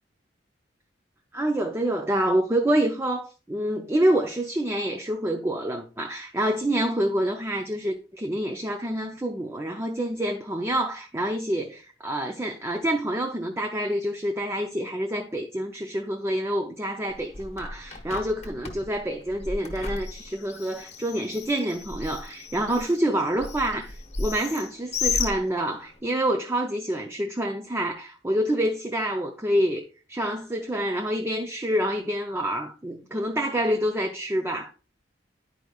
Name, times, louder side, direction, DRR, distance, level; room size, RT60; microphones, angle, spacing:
voice 1, 1.3-34.7, right 1 dB, 15° right, 0.5 m, -27 dB
Bird, 17.1-26.0, left 4 dB, 35° left, 0.9 m, -34 dB
10.5 x 4.7 x 2.3 m
head